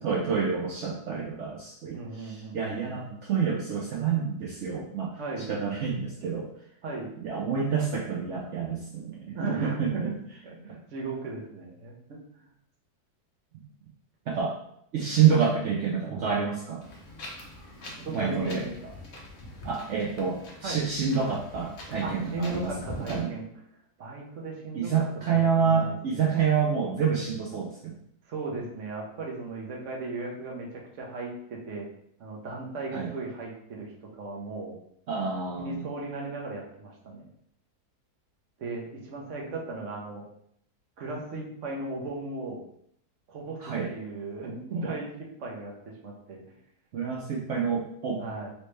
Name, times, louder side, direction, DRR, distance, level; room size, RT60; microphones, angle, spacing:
voice 1, 0.0-5.1 5.5-6.5 7.2-10.1 14.3-14.6 14.9-16.8 18.1-18.6 19.6-22.7 23.1-23.3 24.7-27.9 32.9-33.1 35.1-35.8 43.6-43.9 46.9-48.2, right 6 dB, 80° right, -3 dB, 0.6 m, -28 dB
voice 2, 1.9-3.2 5.2-5.5 6.8-7.1 9.3-10.1 10.4-12.5 18.0-18.9 20.6-20.8 22.0-23.5 24.0-24.9 25.3-26.4 28.3-31.9 32.2-34.7 35.6-37.3 38.6-40.2 41.0-42.6 43.3-43.6 43.9-46.4 48.2-48.5, right 3 dB, 55° right, -2 dB, 1.0 m, -37 dB
Wind, 16.8-23.2, left 1 dB, 50° left, 0.6 m, -44 dB
3.1 x 2.9 x 3.1 m, 0.70 s
omnidirectional pair, 1.8 m